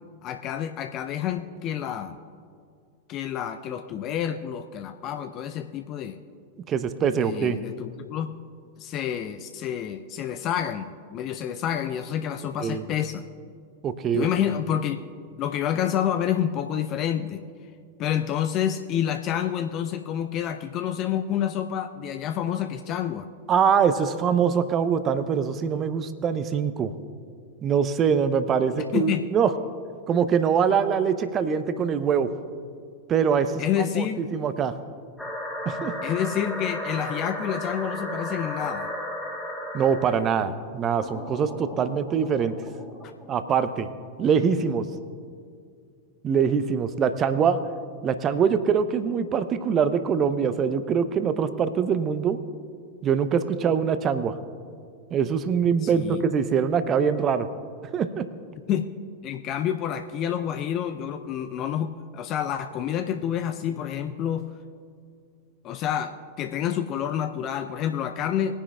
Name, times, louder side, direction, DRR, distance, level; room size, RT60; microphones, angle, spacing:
voice 1, 0.2-2.2 3.1-6.2 7.1-8.4 8.8-13.2 14.1-15.0 15.4-17.5 18.0-23.3 28.9-29.2 33.6-34.3 36.0-38.9 55.8-56.2 58.7-58.9 59.2-64.5 65.6-68.6, left 9 dB, 35° left, 8 dB, 0.5 m, -28 dB
voice 2, 6.7-7.6 12.6-12.8 13.8-14.3 23.5-26.9 27.6-29.5 30.1-32.3 33.1-33.6 34.0-34.1 34.3-34.7 35.7-35.9 39.7-42.5 43.3-43.9 44.2-44.9 46.2-47.6 48.0-52.4 53.0-54.3 55.1-57.5 57.9-58.3, right 7 dB, 30° right, 12 dB, 0.7 m, -23 dB
sound 1, 35.2-40.2 41.0-43.5, left 1 dB, 5° left, 1.8 m, -34 dB
20.5 x 10.0 x 2.3 m, 2.3 s
figure-of-eight pair, 90°, 0 cm